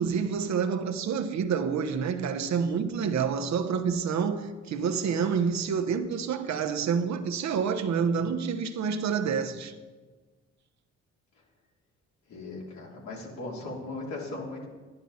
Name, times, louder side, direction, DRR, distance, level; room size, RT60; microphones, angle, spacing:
voice 1, 0.0-9.7, right 6 dB, 65° right, 1.0 m, -28 dB
voice 2, 12.3-14.7, left 2 dB, 70° left, 3.4 m, -38 dB
11.0 x 11.0 x 4.2 m
cardioid pair, 90°, 30 cm